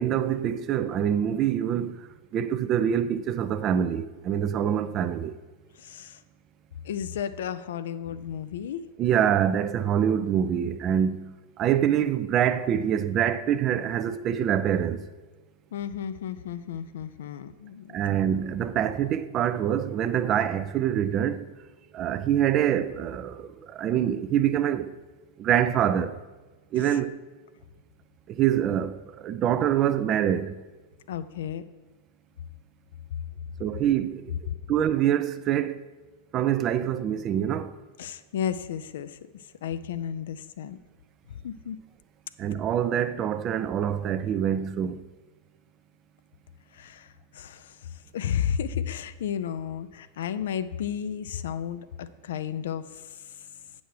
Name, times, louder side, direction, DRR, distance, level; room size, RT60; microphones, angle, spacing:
voice 1, 0.0-5.4 9.0-15.1 17.9-21.5 21.9-24.9 25.4-26.2 26.7-27.2 28.3-30.6 33.6-34.3 34.7-35.8 36.3-37.8 42.4-45.0, right 9 dB, 35° right, 0.4 m, -25 dB
voice 2, 5.8-6.2 6.8-8.8 15.7-17.9 31.1-31.6 38.0-39.2 39.6-40.8 41.4-41.8 46.7-47.1 47.3-47.8 48.1-52.9, left 9 dB, 60° left, 0.4 m, -33 dB
8.9 x 6.2 x 4.8 m
figure-of-eight pair, 90°, 0 cm